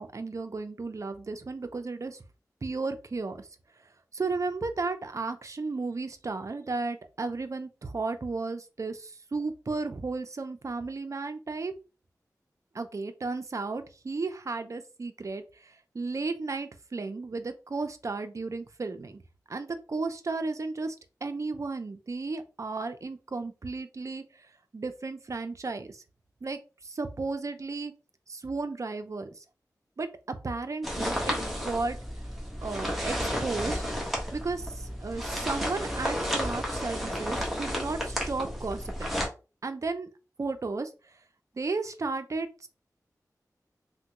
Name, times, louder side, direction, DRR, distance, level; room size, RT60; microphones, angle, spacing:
voice 1, 0.0-2.2 2.6-3.5 4.1-11.7 12.7-19.2 19.5-21.0 21.2-24.5 24.7-26.0 26.4-27.9 28.3-29.4 30.0-32.0 32.6-33.8 34.3-39.2 39.6-40.1 40.4-41.1 41.5-42.7, right 3 dB, 50° right, 8 dB, 0.5 m, -34 dB
sound 1, 30.8-39.3, equal, ahead, 1.1 m, -32 dB
3.4 x 2.1 x 2.9 m, 0.32 s
wide cardioid pair, 60°, 7 cm